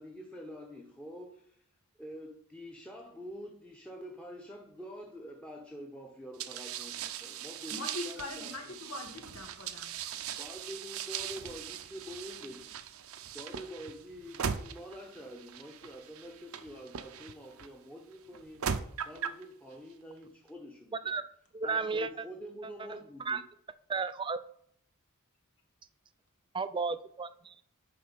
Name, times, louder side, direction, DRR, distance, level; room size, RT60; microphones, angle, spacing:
voice 1, 0.0-1.6 2.0-8.8 10.4-12.8 13.3-18.7 19.0-21.1 21.6-23.4, equal, 5° left, 1 dB, 0.9 m, -46 dB
sound 1, 6.4-17.7 18.3-19.4, right 7 dB, 70° right, 0.6 m, -40 dB
voice 2, 7.7-9.9, left 2 dB, 80° left, 3 dB, 1.9 m, -42 dB
voice 3, 21.5-22.3 22.9-23.4 23.9-24.4 26.5-27.5, right 4 dB, 20° right, 13 dB, 0.4 m, -33 dB
10.5 x 3.9 x 5.3 m, 0.67 s
head